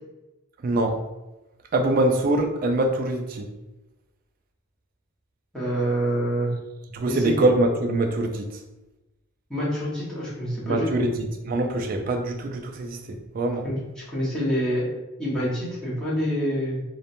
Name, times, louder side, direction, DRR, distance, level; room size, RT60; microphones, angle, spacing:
voice 1, 0.6-1.0 1.7-3.5 6.9-8.5 10.6-13.6, right 2 dB, 40° right, 4 dB, 0.3 m, -24 dB
voice 2, 5.5-6.5 7.1-7.2 9.5-11.0 13.6-16.8, equal, 5° left, -9 dB, 0.8 m, -27 dB
2.9 x 2.1 x 2.5 m, 1.0 s
head